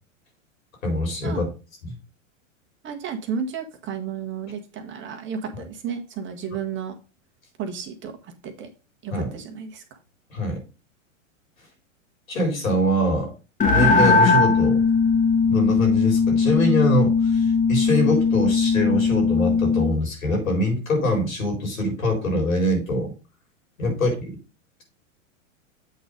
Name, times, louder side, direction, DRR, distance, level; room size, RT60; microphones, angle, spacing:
voice 1, 0.8-1.5 1.8-2.0 9.1-9.3 10.3-10.6 12.3-13.3 13.7-14.8 15.5-23.1 23.8-24.3, left 1 dB, 90° left, 2 dB, 4.1 m, -24 dB
voice 2, 2.8-6.9 7.6-8.7 9.0-10.0, right 6 dB, 30° right, 4 dB, 1.4 m, -33 dB
sound 1, 13.6-20.0, left 4 dB, 20° left, 1.2 m, -19 dB
8.1 x 4.0 x 5.1 m, 0.32 s
hypercardioid pair, 115°, 40 cm